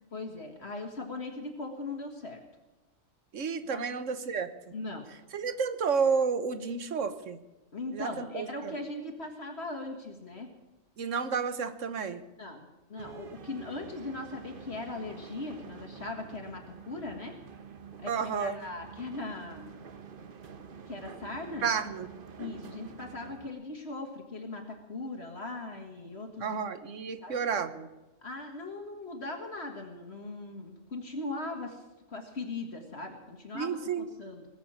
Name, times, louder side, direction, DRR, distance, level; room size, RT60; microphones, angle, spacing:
voice 1, 0.1-2.4 3.6-3.9 4.7-5.1 7.7-10.5 12.4-17.3 18.0-18.1 18.4-19.8 20.9-21.7 22.4-26.5 27.2-27.4 28.2-31.8 32.1-34.5, left 2 dB, 50° left, 1 dB, 2.1 m, -39 dB
voice 2, 3.3-4.5 5.3-7.4 7.9-8.7 11.0-12.2 18.1-18.6 21.6-22.1 26.4-27.9 33.5-34.1, right 6 dB, 65° right, 11 dB, 1.4 m, -31 dB
sound 1, 13.0-23.5, right 6 dB, 45° right, 1.1 m, -48 dB
20.0 x 7.9 x 8.8 m, 1.1 s
omnidirectional pair, 1.4 m